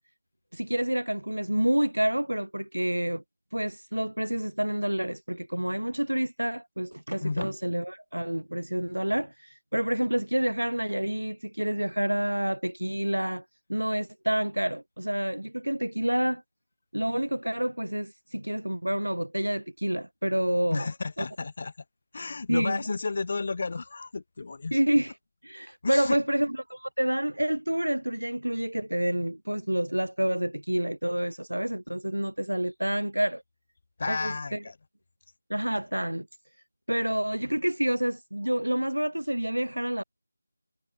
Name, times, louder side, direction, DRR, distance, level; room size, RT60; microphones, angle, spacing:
voice 1, 0.5-3.2 3.5-13.4 13.7-16.4 16.9-20.9 21.2-21.3 22.5-22.8 24.7-25.1 25.4-33.4 34.1-34.6 35.5-36.3 36.9-40.0, right 1 dB, 80° right, 0.8 m, -28 dB
voice 2, 20.7-21.7 22.1-24.8 25.8-26.2 34.0-34.8, left 3 dB, 40° left, 3.5 m, -32 dB
figure-of-eight pair, 160°, 0 cm